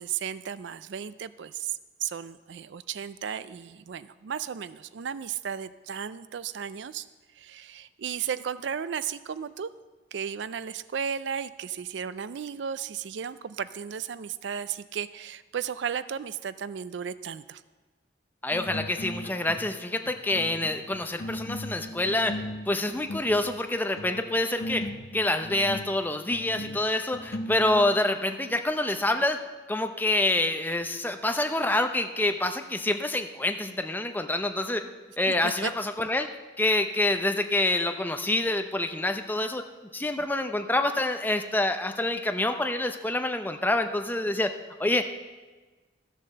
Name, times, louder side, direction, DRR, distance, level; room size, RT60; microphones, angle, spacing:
voice 1, 0.0-7.1 7.4-9.7 10.1-17.6 35.3-35.7, right 8 dB, 70° right, 15 dB, 0.4 m, -34 dB
voice 2, 18.4-22.4 22.7-29.4 29.7-34.9 35.2-36.3 36.6-39.6 39.9-44.5 44.8-45.0, left 2 dB, 10° left, 6 dB, 0.6 m, -27 dB
sound 1, 18.5-19.8 20.0-28.2, left 1 dB, 55° left, 1.0 m, -38 dB
13.0 x 7.3 x 6.7 m, 1.3 s
head